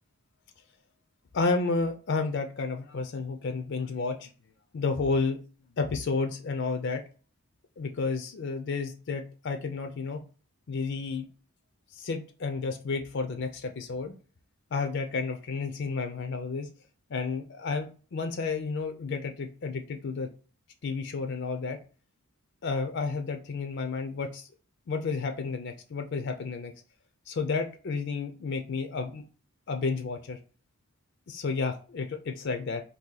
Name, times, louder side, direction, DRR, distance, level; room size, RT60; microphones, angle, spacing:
voice 1, 1.3-4.3 4.7-5.4 5.8-7.0 7.8-10.2 10.7-11.2 11.9-14.1 14.7-16.7 17.1-20.3 20.8-21.8 22.6-24.5 24.9-26.7 27.3-29.2 29.7-30.4 31.3-32.8, left 4 dB, 50° left, 6 dB, 0.4 m, -31 dB
2.7 x 2.7 x 3.8 m, 0.37 s
head